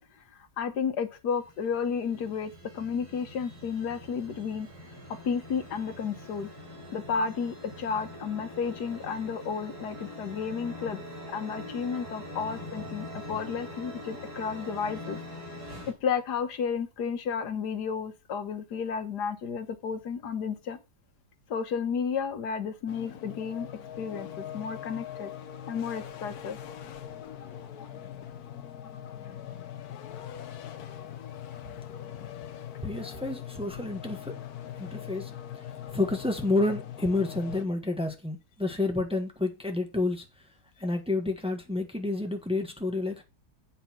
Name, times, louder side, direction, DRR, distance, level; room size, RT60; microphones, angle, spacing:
voice 1, 0.6-4.7 5.2-6.5 6.9-11.0 11.3-15.2 15.9-20.8 21.5-23.7 24.0-25.3 25.7-26.6, left 6 dB, 85° left, 1.7 m, -32 dB
sound 1, 1.3-15.9, left 1 dB, 75° right, 4.3 m, -43 dB
sound 2, 22.9-37.6, left 10 dB, 70° left, 1.3 m, -41 dB
voice 2, 32.8-34.4 34.8-35.3 35.9-40.2 40.8-43.2, left 2 dB, 5° right, 1.4 m, -29 dB
8.2 x 5.9 x 6.0 m
omnidirectional pair, 1.7 m